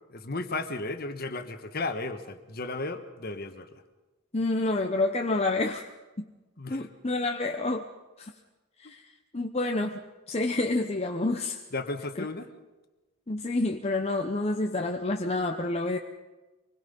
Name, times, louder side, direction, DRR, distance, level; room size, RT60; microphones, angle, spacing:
voice 1, 0.0-3.7 6.6-6.9 8.8-8.9 11.7-12.5, left 2 dB, 45° left, 8 dB, 1.4 m, -34 dB
voice 2, 4.3-5.9 6.7-7.9 8.2-8.3 8.8-9.1 9.3-11.6 13.3-16.0, left 2 dB, 30° left, 3 dB, 0.8 m, -28 dB
25.5 x 20.5 x 5.4 m, 1.1 s
head